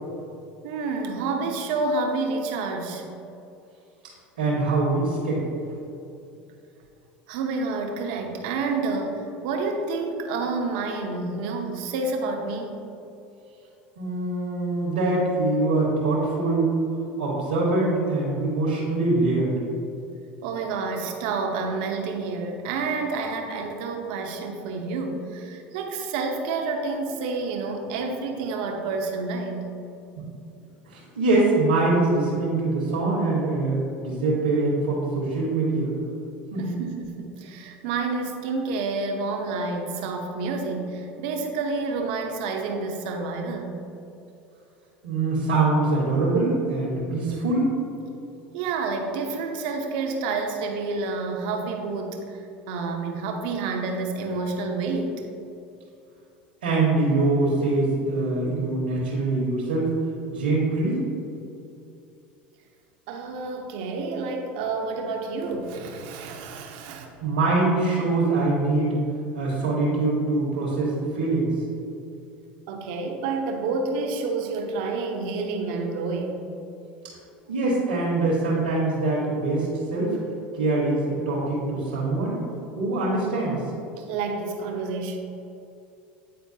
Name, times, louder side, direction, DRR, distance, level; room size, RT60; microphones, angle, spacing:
voice 1, 0.6-3.0 7.3-12.8 20.4-29.7 36.6-43.8 48.5-55.2 63.1-67.1 72.7-76.5 84.0-85.2, right 3 dB, 70° right, 2 dB, 0.8 m, -29 dB
voice 2, 4.4-5.4 14.0-16.8 17.2-19.5 30.2-30.3 30.9-35.9 36.5-36.8 45.0-47.7 56.6-59.9 60.3-61.1 67.2-69.0 69.3-71.5 77.5-80.2 80.5-82.4 82.8-83.6, right 2 dB, 85° right, -6 dB, 1.3 m, -23 dB
8.8 x 4.3 x 2.8 m, 2.7 s
hypercardioid pair, 90°, 5 cm